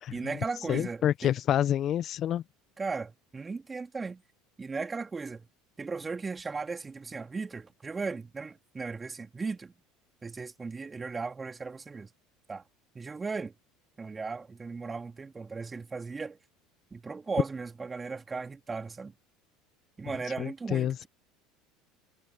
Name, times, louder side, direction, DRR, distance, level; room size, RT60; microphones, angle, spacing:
voice 1, 0.1-1.3 2.8-4.2 4.6-5.5 5.8-9.7 10.2-12.1 12.5-12.6 13.0-13.5 14.0-16.4 16.9-19.1 20.0-21.1, right 4 dB, 20° right, 3.5 m, -36 dB
voice 2, 0.7-2.4 20.4-20.9, left 11 dB, 45° left, 0.7 m, -28 dB
hypercardioid pair, 75°, 0 cm